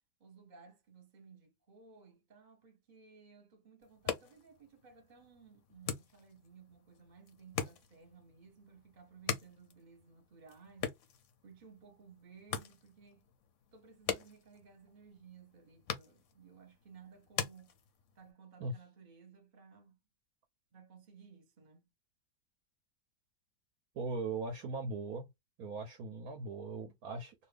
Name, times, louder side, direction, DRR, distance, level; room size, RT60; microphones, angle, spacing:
voice 1, 0.2-10.9 11.4-13.3 13.7-17.7 18.1-20.0 20.7-21.8, right 5 dB, 30° right, 1.1 m, -58 dB
sound 1, 3.8-18.3, left 7 dB, 60° left, 0.8 m, -44 dB
voice 2, 23.9-25.3 25.6-27.3, right 3 dB, 65° right, 1.1 m, -39 dB
2.7 x 2.7 x 3.4 m
omnidirectional pair, 1.9 m